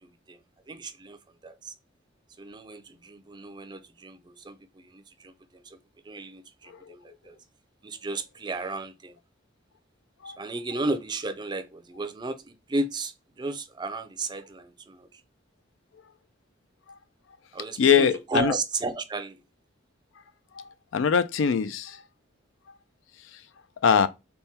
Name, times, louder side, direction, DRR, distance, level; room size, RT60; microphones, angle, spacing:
voice 1, 0.0-0.4 0.7-1.2 1.4-1.7 2.4-5.8 6.0-7.4 7.8-9.1 10.3-15.2 17.5-19.4, right 3 dB, 25° right, 0.4 m, -34 dB
voice 2, 17.8-18.5 20.9-22.0 23.8-24.1, left 7 dB, 75° left, 0.4 m, -21 dB
3.5 x 2.1 x 4.1 m
head